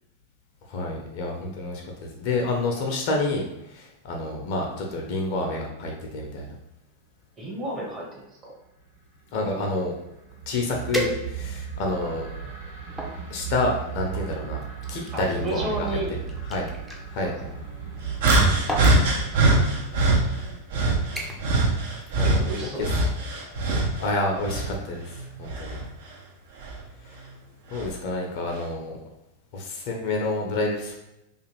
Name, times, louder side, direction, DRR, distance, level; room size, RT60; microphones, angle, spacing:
voice 1, 0.7-6.5 9.3-10.0 10.5-12.3 13.3-14.6 14.9-16.0 16.5-16.7 17.1-17.5 21.1-21.8 22.2-22.7 24.0-25.8 27.1-27.2 27.7-29.0 29.5-30.9, left 2 dB, 45° left, 0 dB, 0.5 m, -29 dB
voice 2, 7.4-8.5 11.9-12.2 15.1-16.1 17.2-17.3 22.2-22.8 23.7-23.8, right 1 dB, 20° right, -3 dB, 0.9 m, -32 dB
sound 1, 8.8-20.6, right 7 dB, 75° right, 1.2 m, -36 dB
sound 2, 10.9-11.7 12.3-13.2 14.1-17.0 18.1-18.4 18.7-19.0 19.9-20.0 20.5-20.7 21.2-21.6 21.9-22.2 22.6-22.7, equal, ahead, 0.5 m, -34 dB
sound 3, 18.2-20.2 20.7-24.0 24.4-25.9 26.6-26.8 27.7-27.9, right 2 dB, 55° right, 0.5 m, -22 dB
2.4 x 2.4 x 3.1 m, 0.88 s
figure-of-eight pair, 90°, 0 cm